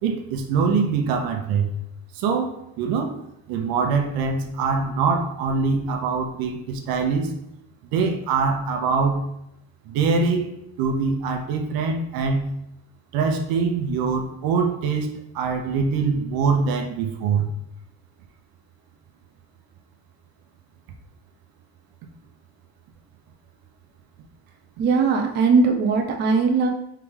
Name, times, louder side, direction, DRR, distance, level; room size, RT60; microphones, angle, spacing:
voice 1, 0.0-1.7 2.1-3.2 3.5-7.3 7.8-9.2 9.9-12.5 13.1-17.5, right 5 dB, 70° right, 4 dB, 0.8 m, -23 dB
voice 2, 24.8-26.7, right 4 dB, 30° right, 3 dB, 0.4 m, -19 dB
3.7 x 3.5 x 3.3 m, 0.81 s
cardioid pair, 135°, 37 cm